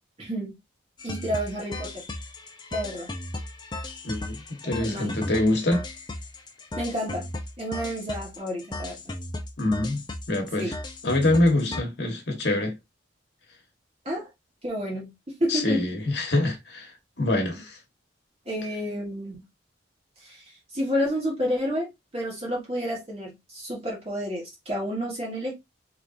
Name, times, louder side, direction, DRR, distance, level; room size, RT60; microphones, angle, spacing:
voice 1, 0.2-0.6 1.0-2.0 2.7-3.1 4.8-5.1 6.8-7.3 7.6-9.0 10.6-10.7 14.0-14.3 14.6-15.1 15.4-15.8 18.4-19.4 20.2-25.5, equal, 30° right, 1.4 m, -30 dB
sound 1, 1.0-11.8, left 1 dB, 25° left, 0.5 m, -36 dB
voice 2, 4.0-5.8 9.6-10.7 11.0-12.7 15.5-16.9 17.2-17.8, left 2 dB, 60° left, 1.1 m, -25 dB
3.5 x 3.2 x 2.6 m
head